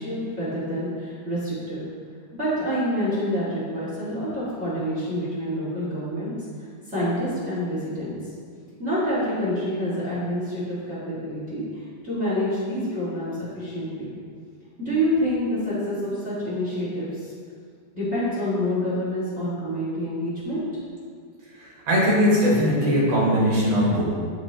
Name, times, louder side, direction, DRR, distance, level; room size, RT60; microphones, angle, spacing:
voice 1, 0.0-1.9 2.4-6.3 6.6-8.3 8.8-14.1 14.8-17.3 17.9-20.6, equal, 25° right, -10 dB, 2.1 m, -27 dB
voice 2, 21.6-24.0, equal, 60° right, -6 dB, 3.1 m, -20 dB
13.5 x 4.6 x 3.1 m, 2.1 s
omnidirectional pair, 3.5 m